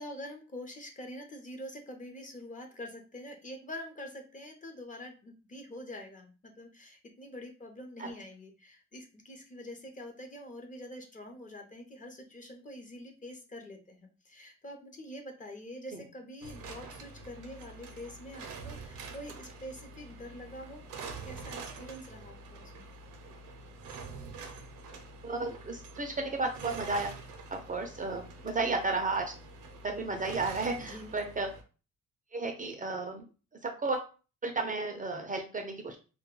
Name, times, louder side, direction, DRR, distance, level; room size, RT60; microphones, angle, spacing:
voice 1, 0.0-20.9 21.2-22.9 30.9-31.2, left 1 dB, 25° left, 3 dB, 0.6 m, -45 dB
sound 1, 16.4-31.6, right 4 dB, 80° right, 0.6 m, -46 dB
voice 2, 25.2-27.1 27.5-29.3 29.8-31.5 32.3-33.2 33.6-34.0 34.4-36.0, right 3 dB, 25° right, 4 dB, 0.5 m, -33 dB
2.2 x 2.2 x 3.0 m, 0.34 s
cardioid pair, 90°, 30 cm